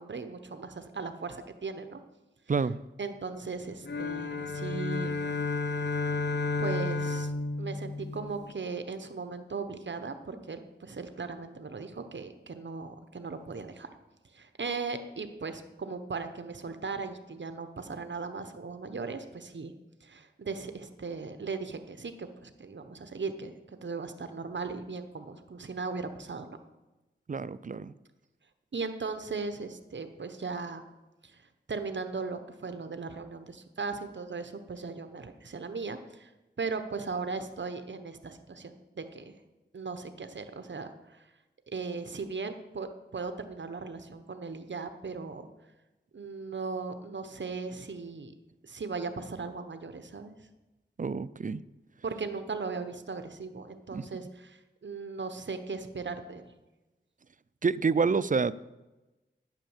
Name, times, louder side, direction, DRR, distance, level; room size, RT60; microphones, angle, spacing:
voice 1, 0.0-2.0 3.0-5.2 6.6-7.3 7.6-13.9 14.3-19.7 20.0-26.6 28.7-30.8 31.2-31.4 31.7-36.3 36.6-39.3 39.7-41.3 41.7-45.5 46.1-48.3 48.6-50.5 52.0-56.4, right 4 dB, 65° right, 8 dB, 1.0 m, -38 dB
sound 1, 3.8-8.5, left 3 dB, 60° left, 0.8 m, -32 dB
voice 2, 27.3-27.9 51.0-51.6 53.9-54.0 57.6-58.5, right 5 dB, 40° right, 17 dB, 0.5 m, -28 dB
9.8 x 9.0 x 7.2 m, 1.1 s
wide cardioid pair, 60°, 20 cm